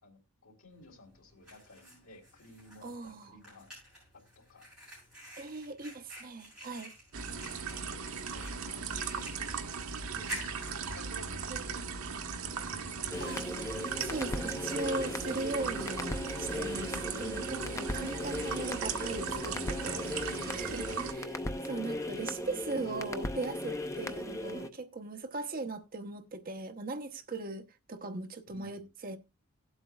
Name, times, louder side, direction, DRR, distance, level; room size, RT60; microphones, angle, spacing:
voice 1, 0.0-3.7 4.3-4.7 7.7-8.0 8.3-9.8 10.1-11.8 12.7-13.5 17.9-18.4 20.9-21.0 28.5-28.9, left 2 dB, 70° left, 3.3 m, -55 dB
Fire, 0.7-15.7, equal, 5° right, 7.7 m, -51 dB
voice 2, 2.8-3.4 5.4-6.9 11.5-11.8 13.2-13.4 14.0-20.9 21.1-21.3 21.6-29.2, right 3 dB, 40° right, 0.8 m, -39 dB
sound 1, 7.1-21.1, right 5 dB, 75° right, 1.1 m, -38 dB
sound 2, 13.1-24.7, left 1 dB, 15° left, 0.6 m, -37 dB
18.0 x 8.0 x 2.3 m
head